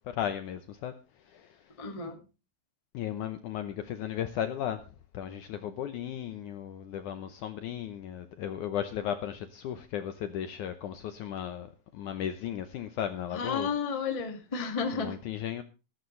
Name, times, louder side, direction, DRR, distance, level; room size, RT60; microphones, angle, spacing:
voice 1, 0.1-0.9 1.3-1.5 2.9-4.8 5.1-13.7 14.9-15.6, left 10 dB, 70° left, 1.9 m, -35 dB
voice 2, 1.8-2.2 13.3-15.2, left 5 dB, 15° left, 1.1 m, -32 dB
14.0 x 14.0 x 3.2 m
omnidirectional pair, 4.3 m